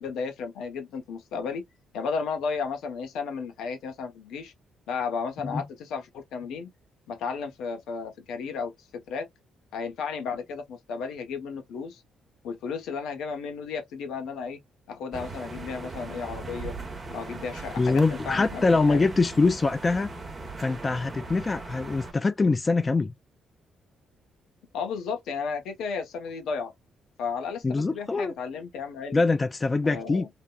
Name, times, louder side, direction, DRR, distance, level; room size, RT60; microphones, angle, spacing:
voice 1, 0.0-1.6 1.9-4.5 4.9-6.7 7.1-9.3 9.7-12.0 12.4-14.6 14.9-16.7 17.1-19.0 24.7-26.7 27.2-29.2 29.8-30.3, left 5 dB, 85° left, 0.9 m, -33 dB
sound 1, 15.1-22.1, right 3 dB, 30° right, 1.0 m, -39 dB
voice 2, 17.8-20.1 20.6-23.1 27.6-28.3 29.1-30.3, left 3 dB, 30° left, 0.4 m, -24 dB
3.4 x 2.1 x 2.3 m
cardioid pair, 90°, 0 cm